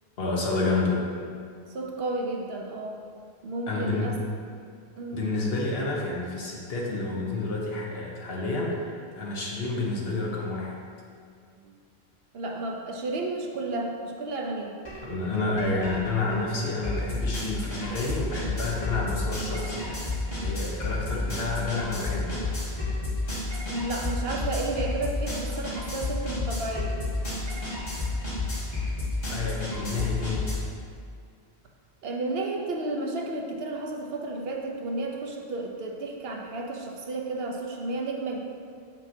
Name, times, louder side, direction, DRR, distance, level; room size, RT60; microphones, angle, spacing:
voice 1, 0.2-1.0 3.7-4.2 5.1-10.8 15.0-22.5 29.3-30.5, left 3 dB, 70° left, -3 dB, 1.2 m, -29 dB
voice 2, 1.7-3.0 3.4-4.2 5.0-5.2 11.6-11.7 12.3-14.8 23.7-26.9 32.0-38.4, right 2 dB, 70° right, 1 dB, 0.9 m, -32 dB
sound 1, 14.8-15.0 15.3-30.5, left 2 dB, 40° left, 1.8 m, -31 dB
7.3 x 5.9 x 2.7 m, 2.2 s
omnidirectional pair, 1.1 m